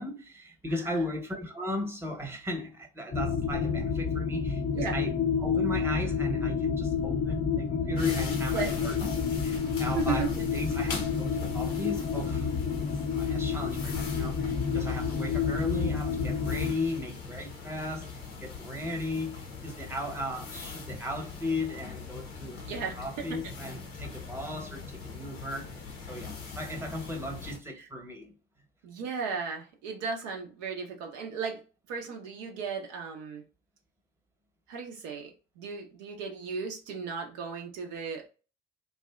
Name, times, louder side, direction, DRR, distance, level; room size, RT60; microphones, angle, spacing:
voice 1, 0.0-5.1 5.4-9.0 9.4-12.5 13.2-28.3, left 1 dB, 10° right, 0.9 m, -36 dB
sound 1, 3.1-16.7, left 6 dB, 25° left, 0.4 m, -29 dB
sound 2, 7.9-27.6, left 4 dB, 80° left, 0.6 m, -41 dB
voice 2, 9.9-10.4 22.7-23.4 28.8-31.6 31.9-33.4 34.7-38.3, right 5 dB, 65° right, 0.5 m, -35 dB
2.6 x 2.1 x 2.2 m
hypercardioid pair, 50°, 31 cm